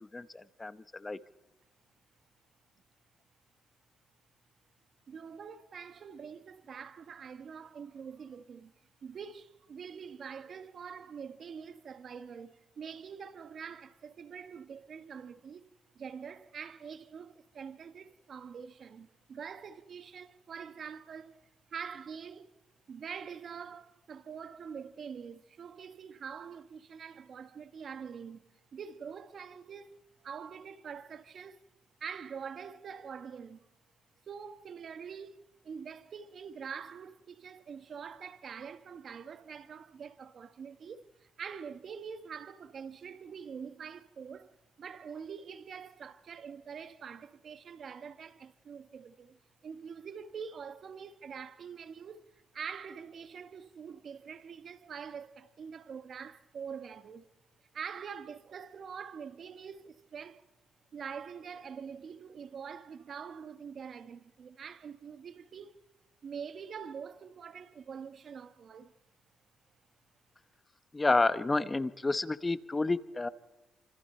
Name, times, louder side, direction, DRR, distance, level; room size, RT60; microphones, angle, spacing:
voice 1, 0.1-1.2 70.9-73.3, left 3 dB, 20° left, 1.0 m, -30 dB
voice 2, 5.1-8.7 9.0-22.5 22.9-28.4 28.7-30.0 30.2-31.6 32.0-33.7 34.3-57.2 57.7-60.4 60.9-65.8 66.2-68.9, right 6 dB, 55° right, 1.3 m, -45 dB
28.5 x 26.5 x 4.4 m
cardioid pair, 90°, 0 cm